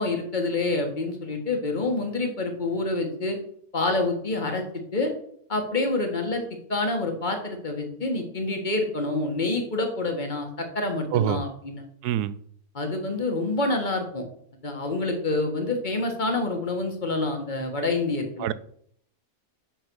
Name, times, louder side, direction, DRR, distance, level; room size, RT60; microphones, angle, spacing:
voice 1, 0.0-3.4 3.7-5.1 5.5-6.4 6.7-11.8 12.7-14.2 14.6-18.5, left 2 dB, 30° left, 1.7 m, -27 dB
voice 2, 12.0-12.4 18.4-18.5, right 12 dB, 80° right, 1.1 m, -25 dB
8.2 x 6.2 x 6.3 m
omnidirectional pair, 1.7 m